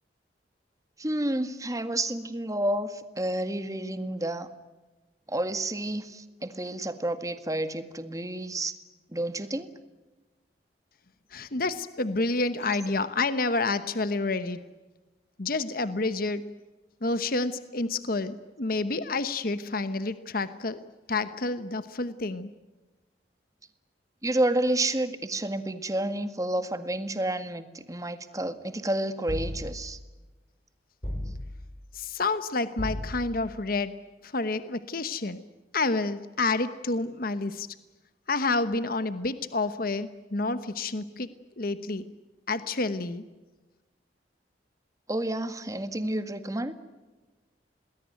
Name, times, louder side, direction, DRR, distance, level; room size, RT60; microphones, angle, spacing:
voice 1, 1.0-4.5 5.3-8.7 9.1-9.7 24.2-30.0 45.1-46.7, right 1 dB, 20° right, 9 dB, 1.9 m, -30 dB
voice 2, 11.3-14.7 15.4-16.5 17.0-20.8 21.1-22.5 31.9-34.0 34.2-35.4 35.7-37.7 38.3-41.3 41.6-42.1 42.5-43.2, left 3 dB, 55° left, 12 dB, 1.1 m, -29 dB
sound 1, 29.3-30.0 31.0-31.8 32.8-33.5, left 1 dB, 35° left, 5.7 m, -35 dB
28.0 x 20.5 x 9.3 m, 1.2 s
head